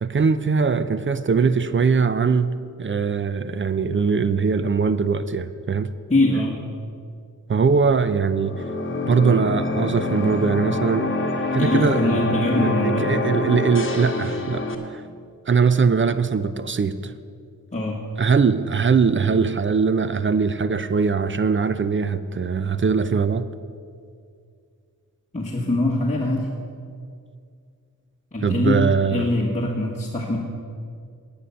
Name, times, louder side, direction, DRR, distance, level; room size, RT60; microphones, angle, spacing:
voice 1, 0.0-2.5 2.8-5.9 7.5-8.5 9.0-11.1 11.5-14.6 14.9-15.0 15.5-17.1 18.2-23.5 28.4-29.3, right 5 dB, 35° right, 13 dB, 0.6 m, -21 dB
voice 2, 6.1-6.6 11.6-13.1 17.7-18.0 25.3-26.5 28.3-30.4, left 1 dB, 20° left, -3 dB, 1.6 m, -23 dB
sound 1, 8.3-14.7, left 2 dB, 35° left, 1.5 m, -26 dB
9.8 x 9.5 x 6.9 m, 2.2 s
cardioid pair, 65°, 35 cm